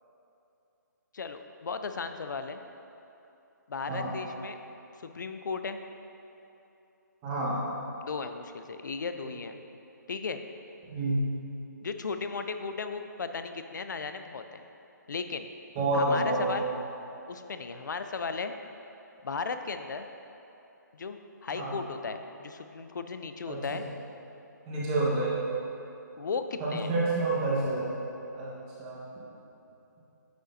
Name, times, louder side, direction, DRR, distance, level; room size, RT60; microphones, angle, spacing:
voice 1, 1.1-2.6 3.7-4.6 5.0-5.8 8.0-9.6 10.1-10.4 11.8-14.6 15.1-15.5 15.9-16.7 17.3-18.5 19.2-20.1 20.9-23.8 26.2-26.9, left 5 dB, 70° left, 8 dB, 0.5 m, -36 dB
voice 2, 7.2-7.6 9.2-9.3 10.9-11.2 15.7-16.6 21.5-21.8 23.5-23.8 24.7-25.4 26.6-27.8 28.3-29.0, right 2 dB, 20° right, -7 dB, 1.3 m, -29 dB
9.3 x 6.4 x 2.7 m, 2.9 s
hypercardioid pair, 165°, 10 cm